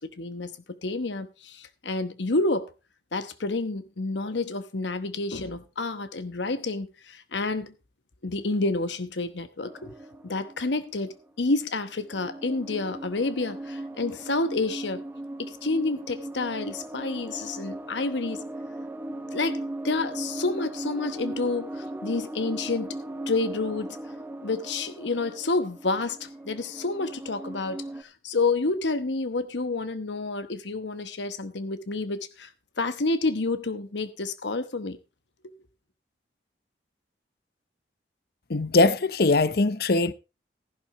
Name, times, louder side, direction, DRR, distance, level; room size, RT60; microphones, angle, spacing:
voice 1, 0.2-2.7 3.1-7.7 8.2-9.9 10.2-11.1 11.4-15.0 15.4-18.4 19.3-23.0 23.3-24.0 24.4-32.5 32.8-35.0 35.4-35.5, left 3 dB, 80° left, 1.0 m, -29 dB
sound 1, 9.6-11.6 12.0-28.0, right 1 dB, 10° right, 1.0 m, -38 dB
voice 2, 38.5-40.1, left 3 dB, 55° left, 0.7 m, -21 dB
15.0 x 11.5 x 2.9 m
head